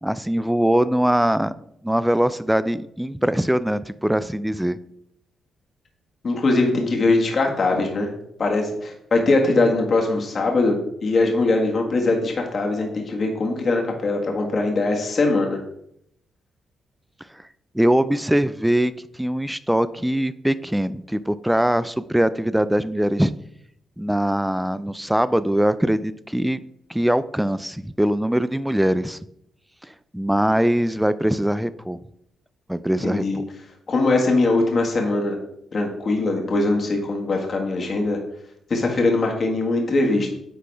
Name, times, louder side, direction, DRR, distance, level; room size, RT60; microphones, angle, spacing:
voice 1, 0.0-1.5 1.8-4.8 17.7-18.9 19.2-23.3 24.0-26.6 26.9-29.2 30.1-32.0 32.7-33.4, right 1 dB, 5° right, 15 dB, 0.4 m, -22 dB
voice 2, 6.2-8.1 8.4-15.6 33.0-33.4 33.9-35.4 35.7-38.2 38.7-40.3, left 2 dB, 50° left, 1 dB, 1.6 m, -21 dB
9.5 x 4.1 x 3.4 m, 0.75 s
supercardioid pair, 60°, 0 cm